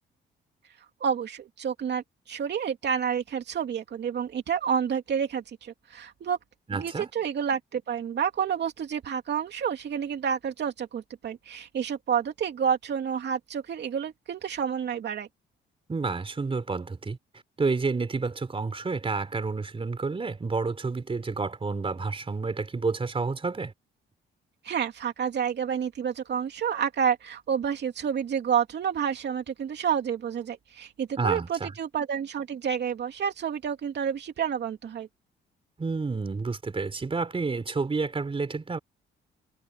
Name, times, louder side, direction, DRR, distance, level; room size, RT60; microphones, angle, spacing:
voice 1, 1.0-6.4 6.8-15.3 24.6-35.1, right 7 dB, 60° right, 2.8 m, -29 dB
voice 2, 6.7-7.1 15.9-17.2 17.6-23.7 31.2-31.8 35.8-38.8, right 4 dB, 25° right, 3.8 m, -29 dB
cardioid pair, 90°, 20 cm